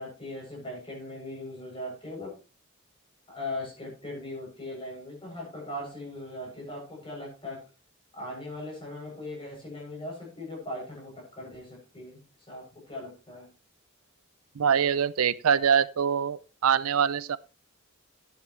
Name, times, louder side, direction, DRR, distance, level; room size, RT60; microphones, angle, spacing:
voice 1, 0.0-2.4 3.3-7.6 8.1-12.2 12.5-13.5, left 1 dB, 25° left, 7.8 m, -39 dB
voice 2, 14.6-17.4, right 7 dB, 85° right, 0.5 m, -24 dB
12.0 x 10.5 x 3.2 m
head